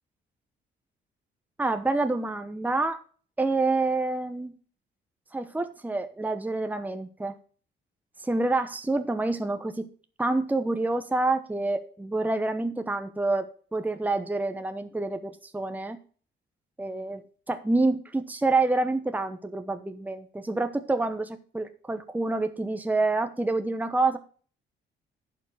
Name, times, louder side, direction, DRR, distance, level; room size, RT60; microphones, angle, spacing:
voice 1, 1.6-3.0 3.4-4.5 5.3-7.3 8.2-9.8 10.2-16.0 16.8-17.2 17.5-24.2, right 2 dB, 10° right, 8 dB, 0.9 m, -27 dB
11.0 x 6.1 x 4.8 m, 0.42 s
cardioid pair, 90°, 20 cm